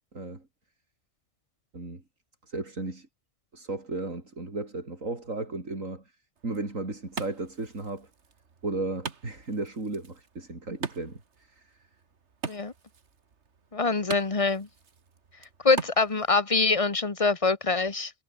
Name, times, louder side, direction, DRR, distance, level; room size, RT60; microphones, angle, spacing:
voice 1, 0.1-0.4 1.7-2.0 2.5-3.1 3.5-6.0 6.4-8.1 8.6-11.8, right 2 dB, 90° right, 4.7 m, -35 dB
Wood, 6.4-16.4, right 5 dB, 60° right, 1.9 m, -42 dB
voice 2, 13.7-14.7 15.6-18.1, left 3 dB, 25° left, 1.5 m, -24 dB
omnidirectional pair, 1.3 m